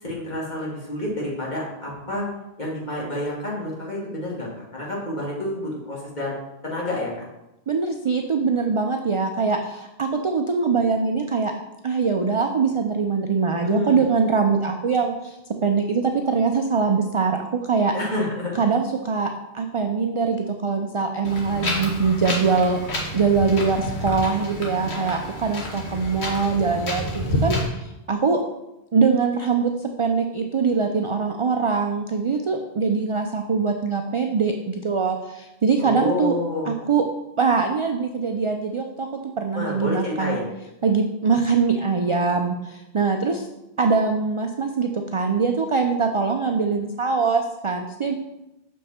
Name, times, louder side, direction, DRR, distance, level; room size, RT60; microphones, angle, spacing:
voice 1, 0.0-2.2 2.6-6.3 6.6-7.1 13.6-14.0 17.9-18.6 35.8-36.8 39.5-40.5, left 1 dB, 45° left, -5 dB, 2.2 m, -28 dB
voice 2, 7.7-11.5 11.8-17.4 17.6-17.9 18.5-19.3 19.5-22.8 23.1-28.4 28.9-36.4 36.6-37.0 37.4-39.1 39.4-40.4 40.8-43.5 43.8-48.1, right 5 dB, 50° right, 4 dB, 0.4 m, -23 dB
Wind, 21.2-27.7, left 1 dB, 90° left, 1.6 m, -29 dB
6.3 x 5.4 x 4.3 m, 0.93 s
omnidirectional pair, 1.1 m